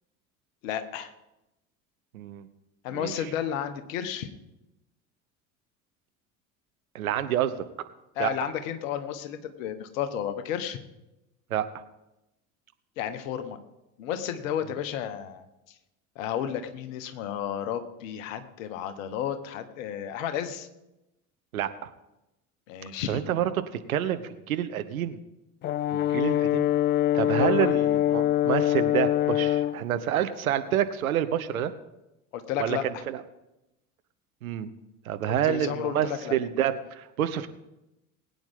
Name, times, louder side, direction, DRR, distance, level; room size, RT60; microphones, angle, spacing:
voice 1, 0.6-1.1 2.8-4.3 8.1-10.8 13.0-13.6 14.0-15.5 16.1-20.7 22.7-23.2 27.4-27.7 32.3-32.8 35.2-36.3, left 9 dB, 65° left, 10 dB, 1.4 m, -32 dB
voice 2, 2.1-2.5 2.9-3.1 6.9-7.5 8.2-8.3 11.5-11.7 21.5-21.9 23.1-23.6 23.9-25.2 25.9-26.7 27.1-31.7 32.6-33.2 34.4-34.7 35.0-37.5, right 10 dB, 75° right, 11 dB, 1.0 m, -28 dB
Brass instrument, 25.6-29.8, left 12 dB, 25° left, 0.3 m, -24 dB
21.0 x 9.3 x 3.7 m, 0.94 s
figure-of-eight pair, 65°, 43 cm